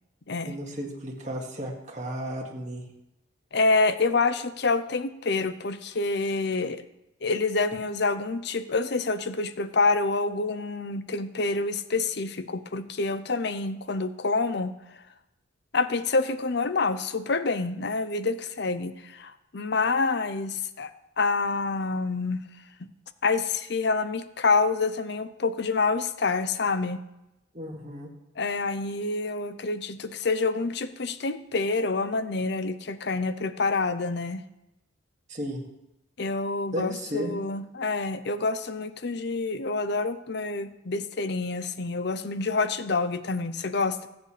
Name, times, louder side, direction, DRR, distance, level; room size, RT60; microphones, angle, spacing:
voice 1, 0.5-2.8 27.5-28.1 35.3-35.6 36.7-37.3, equal, 35° right, -1 dB, 2.1 m, -34 dB
voice 2, 3.5-6.8 7.2-14.7 15.7-20.9 21.2-22.4 23.2-27.0 28.4-34.4 36.2-44.1, left 3 dB, 55° left, 12 dB, 0.6 m, -27 dB
21.5 x 8.0 x 3.3 m, 0.90 s
head